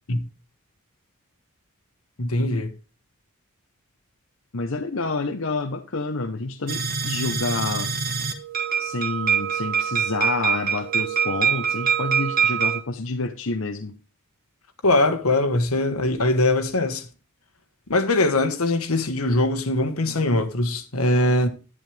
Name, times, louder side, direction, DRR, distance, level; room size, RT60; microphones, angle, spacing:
voice 1, 2.2-2.7 14.8-17.1 17.9-21.5, left 2 dB, 85° left, 1.5 m, -21 dB
voice 2, 4.5-7.9 8.8-13.9, left 3 dB, 65° left, 0.9 m, -28 dB
sound 1, 6.7-12.8, right 7 dB, 40° right, 1.3 m, -24 dB
11.0 x 9.6 x 3.4 m
head